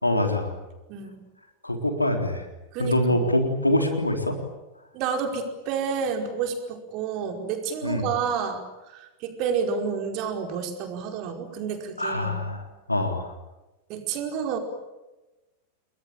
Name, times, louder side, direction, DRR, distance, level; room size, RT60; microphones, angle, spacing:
voice 1, 0.0-0.5 1.6-2.5 2.8-4.4 7.8-8.1 12.0-13.3, left 1 dB, 85° left, 5 dB, 3.8 m, -24 dB
voice 2, 2.7-3.2 4.9-8.6 8.9-12.3 13.9-14.6, right 6 dB, 40° right, 4 dB, 5.0 m, -29 dB
29.5 x 21.0 x 9.0 m, 1.1 s
figure-of-eight pair, 90°, 0 cm